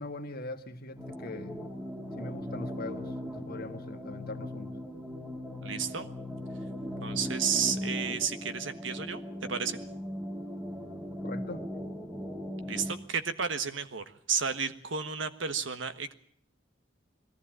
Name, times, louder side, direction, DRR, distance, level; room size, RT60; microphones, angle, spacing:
voice 1, 0.0-1.6 2.2-4.8 11.2-11.6, left 2 dB, 50° left, 6 dB, 1.6 m, -41 dB
sound 1, 1.0-12.9, equal, 10° right, 2.0 m, -38 dB
voice 2, 5.6-6.1 7.0-9.2 9.5-9.8 12.6-16.1, right 6 dB, 75° right, 10 dB, 1.4 m, -32 dB
20.5 x 15.0 x 8.9 m, 0.63 s
head